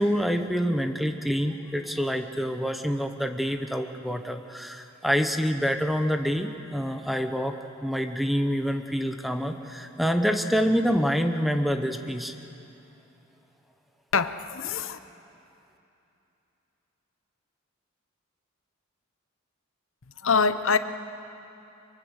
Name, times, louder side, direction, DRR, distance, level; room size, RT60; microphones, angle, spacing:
voice 1, 0.0-7.5 7.8-12.3, equal, ahead, 6 dB, 0.9 m, -26 dB
voice 2, 14.1-15.0 20.2-20.8, left 5 dB, 65° left, 11 dB, 0.9 m, -24 dB
23.5 x 23.5 x 6.5 m, 2.8 s
head